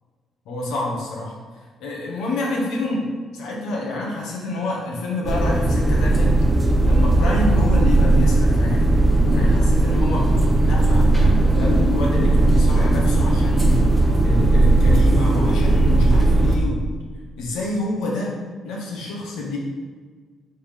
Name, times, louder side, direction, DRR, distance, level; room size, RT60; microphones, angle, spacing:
voice 1, 0.4-1.4 1.8-6.3 6.8-8.9 9.3-10.3 10.6-16.8 17.4-18.3 18.6-19.6, left 2 dB, 90° left, -3 dB, 1.6 m, -27 dB
sound 1, 5.3-16.6, right 2 dB, 10° right, 1.0 m, -17 dB
5.7 x 4.3 x 5.2 m, 1.5 s
cardioid pair, 90°, 0 cm